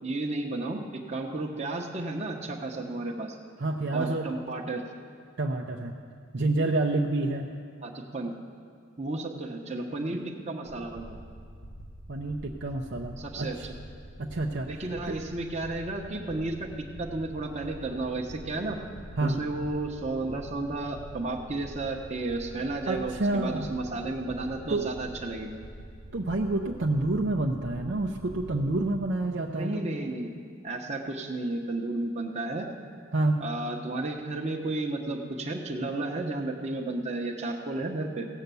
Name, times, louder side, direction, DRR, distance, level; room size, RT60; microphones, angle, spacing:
voice 1, 0.0-3.4 3.9-4.9 7.8-8.4 9.0-11.2 13.2-13.8 14.6-16.7 17.0-18.8 19.2-25.6 29.5-30.4 30.6-32.7 33.4-38.3, right 2 dB, 35° right, 0 dB, 0.9 m, -33 dB
voice 2, 3.6-4.3 5.4-6.0 6.3-7.5 12.1-13.5 14.2-14.7 15.1-15.2 19.2-19.4 22.9-23.7 24.7-24.9 26.1-29.9 33.1-33.4, right 2 dB, 55° right, 0 dB, 0.7 m, -28 dB
sound 1, 10.7-29.0, equal, 80° left, 1.2 m, -46 dB
16.5 x 8.0 x 6.9 m, 2.2 s
head